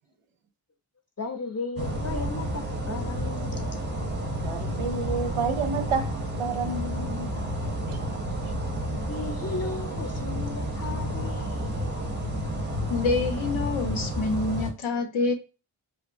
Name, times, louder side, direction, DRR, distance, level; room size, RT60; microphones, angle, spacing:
voice 1, 1.2-3.7 9.0-11.8, left 4 dB, 35° left, 0.5 m, -35 dB
sound 1, 1.8-14.7, equal, 25° right, 0.5 m, -31 dB
voice 2, 4.4-6.1 6.4-7.3 7.9-8.2, right 4 dB, 85° right, 0.6 m, -30 dB
voice 3, 12.9-15.3, left 4 dB, 75° left, 0.6 m, -27 dB
2.7 x 2.2 x 2.5 m
wide cardioid pair, 95°, 49 cm